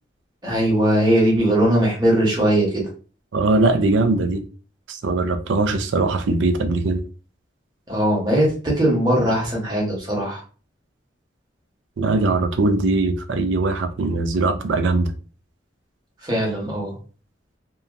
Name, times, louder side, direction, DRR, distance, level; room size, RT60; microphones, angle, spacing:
voice 1, 0.4-2.8 7.9-10.4 16.2-16.9, right 1 dB, 20° right, 1.0 m, -20 dB
voice 2, 3.3-4.4 4.9-7.0 12.0-15.1, right 3 dB, 75° right, 0.4 m, -20 dB
2.8 x 2.3 x 2.3 m
head